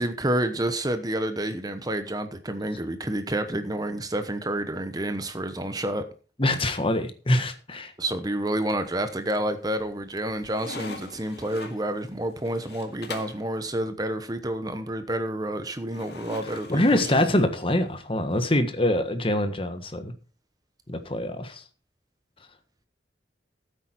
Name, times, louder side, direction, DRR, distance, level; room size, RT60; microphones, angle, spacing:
voice 1, 0.0-6.0 8.0-17.2, right 1 dB, 20° right, 9 dB, 1.0 m, -29 dB
voice 2, 6.4-7.9 16.7-20.1 20.9-21.6, left 1 dB, 30° left, 8 dB, 1.5 m, -24 dB
sound 1, 8.8-9.4 9.8-13.5 15.9-18.0, left 3 dB, 60° left, 2.2 m, -42 dB
14.5 x 8.3 x 4.6 m, 0.37 s
head